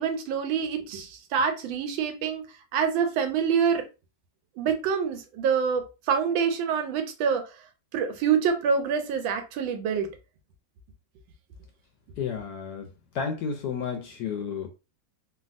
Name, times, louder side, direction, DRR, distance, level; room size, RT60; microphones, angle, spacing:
voice 1, 0.0-3.9 4.6-7.7 7.9-10.1, right 6 dB, 90° right, 1.4 m, -26 dB
voice 2, 12.2-12.9 13.1-14.7, left 6 dB, 70° left, 1.0 m, -31 dB
3.4 x 2.2 x 2.4 m
omnidirectional pair, 2.1 m